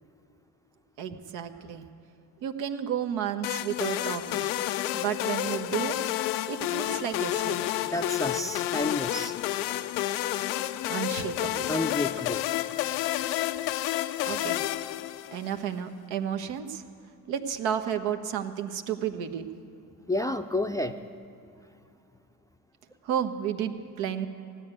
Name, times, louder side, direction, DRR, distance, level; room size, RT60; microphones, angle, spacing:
voice 1, 1.0-1.9 2.4-4.5 4.9-6.0 6.5-7.8 10.9-11.8 14.2-14.6 15.3-16.8 17.3-19.5 23.0-24.3, right 9 dB, 65° right, 7 dB, 1.3 m, -32 dB
sound 1, 3.4-15.6, left 14 dB, 80° left, 0.6 m, -30 dB
voice 2, 7.8-9.3 11.7-12.5 20.1-21.0, left 1 dB, 5° left, 6 dB, 0.6 m, -30 dB
16.0 x 9.1 x 9.3 m, 2.6 s
hypercardioid pair, 60°, 49 cm